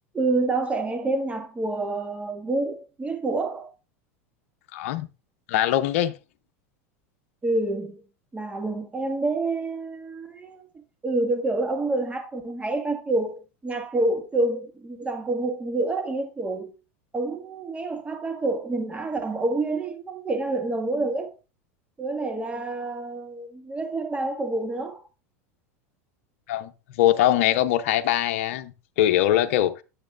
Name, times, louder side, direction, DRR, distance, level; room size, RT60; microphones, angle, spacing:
voice 1, 0.1-3.7 7.4-8.0 8.3-10.7 11.0-16.7 17.1-21.3 22.0-25.0, right 2 dB, 15° right, 1.8 m, -28 dB
voice 2, 4.7-5.1 5.5-6.1 26.5-26.7 27.0-29.8, left 12 dB, 70° left, 0.7 m, -22 dB
10.0 x 7.4 x 2.5 m
hypercardioid pair, 105°, 8 cm